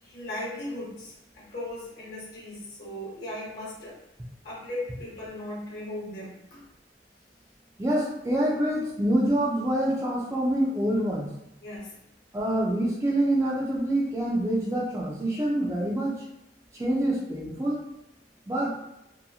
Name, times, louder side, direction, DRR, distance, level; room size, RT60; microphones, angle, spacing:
voice 1, 0.0-4.0 4.4-6.6 11.6-12.0, left 1 dB, 60° left, -6 dB, 0.8 m, -37 dB
voice 2, 7.8-11.3 12.3-16.2 16.7-17.8 18.5-18.7, right 1 dB, 15° right, -3 dB, 0.4 m, -26 dB
2.8 x 2.4 x 2.3 m, 0.85 s
head